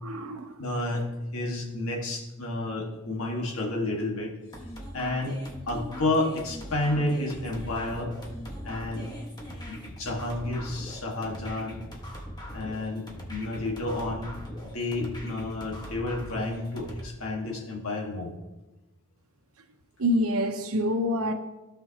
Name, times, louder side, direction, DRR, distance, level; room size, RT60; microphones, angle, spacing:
voice 1, 0.0-0.6 20.0-21.3, equal, 75° right, 1.0 m, -26 dB
voice 2, 0.6-1.1 1.3-4.3 4.9-5.4 5.7-8.1 8.6-9.1 9.6-11.8 12.5-14.3 14.6-18.3, left 2 dB, 70° left, 1.8 m, -30 dB
sound 1, 4.5-17.0, equal, 20° left, 1.5 m, -41 dB
16.0 x 5.5 x 2.9 m
head